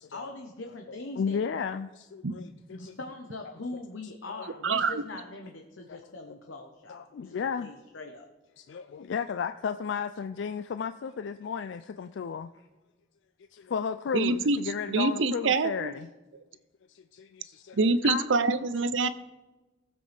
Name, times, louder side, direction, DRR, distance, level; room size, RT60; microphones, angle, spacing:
voice 1, 0.1-1.4 2.7-7.3 7.6-8.3 12.5-12.6, left 2 dB, 90° left, 3 dB, 1.0 m, -41 dB
voice 2, 1.2-2.5 2.8-3.0 4.3-4.8 5.9-6.0 6.9-7.7 8.6-12.5 13.5-16.1 16.9-17.8 18.0-18.2, left 6 dB, 70° left, 10 dB, 0.4 m, -34 dB
voice 3, 4.6-5.0 14.1-14.6 14.9-15.9 17.7-19.1, right 3 dB, 85° right, 13 dB, 0.7 m, -25 dB
18.5 x 7.7 x 3.4 m, 1.1 s
head